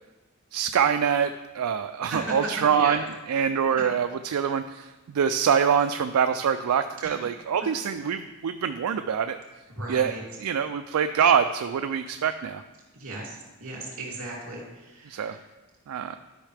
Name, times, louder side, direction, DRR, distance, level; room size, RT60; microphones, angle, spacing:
voice 1, 0.5-9.4 9.9-10.1 10.4-12.6 15.1-15.4 15.9-16.2, right 7 dB, 80° right, 8 dB, 0.4 m, -25 dB
voice 2, 9.8-10.2 12.9-15.4, right 2 dB, 65° right, -4 dB, 2.9 m, -36 dB
12.0 x 5.6 x 3.4 m, 1.2 s
head